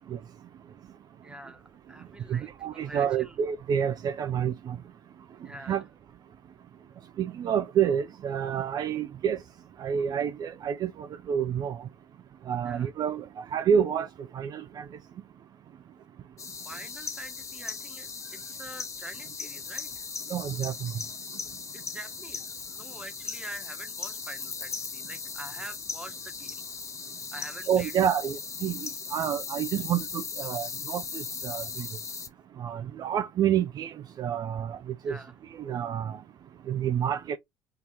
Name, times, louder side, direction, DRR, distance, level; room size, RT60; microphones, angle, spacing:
voice 1, 1.2-3.4 5.4-5.8 12.6-12.9 16.6-20.1 21.7-26.8 27.3-27.9 35.0-35.3, right 1 dB, 10° right, 1.1 m, -45 dB
voice 2, 2.3-4.8 5.7-5.8 7.2-9.4 9.8-11.8 12.5-14.1 14.3-14.8 20.3-20.9 27.7-31.9 32.6-33.9 34.2-34.8 35.1-35.2 35.7-36.2 36.7-37.4, right 8 dB, 40° right, 0.5 m, -28 dB
sound 1, 16.4-32.3, left 5 dB, 30° left, 0.9 m, -38 dB
3.8 x 2.7 x 3.9 m
figure-of-eight pair, 60°, 10 cm